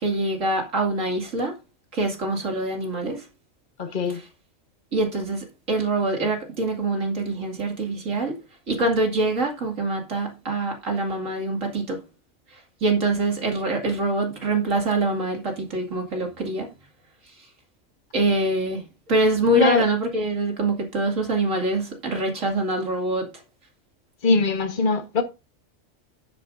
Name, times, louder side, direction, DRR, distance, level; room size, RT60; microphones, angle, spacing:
voice 1, 0.0-1.5 1.9-3.2 4.9-8.4 8.7-12.0 12.8-16.7 18.1-23.3, right 2 dB, 80° right, 2.8 m, -24 dB
voice 2, 3.8-4.2 19.5-19.9 24.2-25.2, left 3 dB, 40° left, 1.4 m, -22 dB
11.0 x 9.7 x 2.7 m
omnidirectional pair, 1.3 m